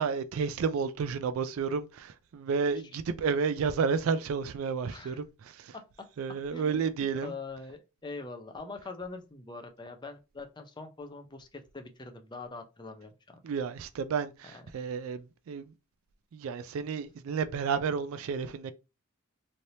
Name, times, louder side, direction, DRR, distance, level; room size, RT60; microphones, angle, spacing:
voice 1, 0.0-5.7 6.2-7.3 13.4-15.7 16.3-18.7, right 5 dB, 70° right, 0.3 m, -31 dB
voice 2, 4.8-5.2 5.7-6.1 6.5-6.8 7.2-13.4 14.5-14.6, left 3 dB, 20° left, 0.5 m, -43 dB
3.2 x 2.8 x 2.6 m
head